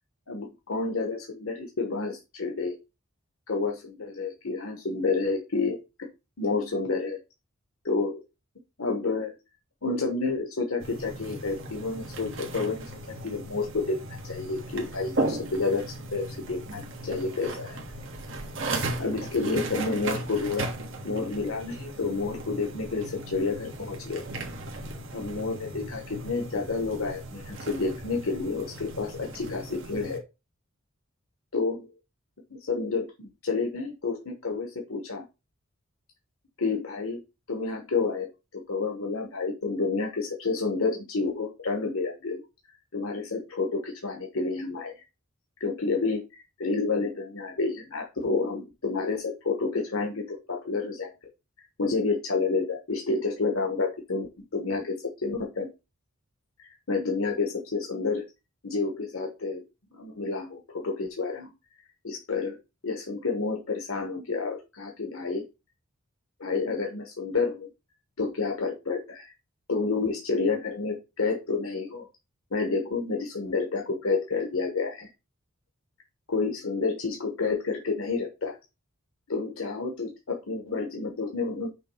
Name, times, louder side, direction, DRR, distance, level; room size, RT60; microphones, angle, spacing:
voice 1, 0.3-2.8 3.5-5.8 6.4-7.2 7.8-8.2 8.8-9.4 9.8-12.9 13.2-14.0 14.2-17.8 19.0-20.7 21.0-24.2 25.1-30.2 31.5-31.9 32.7-35.2 36.6-37.2 37.5-42.4 42.9-45.0 45.6-51.1 51.8-54.3 54.5-55.7 56.6-58.2 58.6-59.6 59.9-61.5 62.0-62.6 62.8-65.4 66.4-67.7 68.2-69.3 69.7-72.1 72.5-75.1 76.3-78.5 79.3-81.7, left 4 dB, 85° left, 2 dB, 1.1 m, -29 dB
sound 1, 10.8-30.2, right 2 dB, 65° right, 1.3 m, -36 dB
6.1 x 3.0 x 5.4 m, 0.26 s
head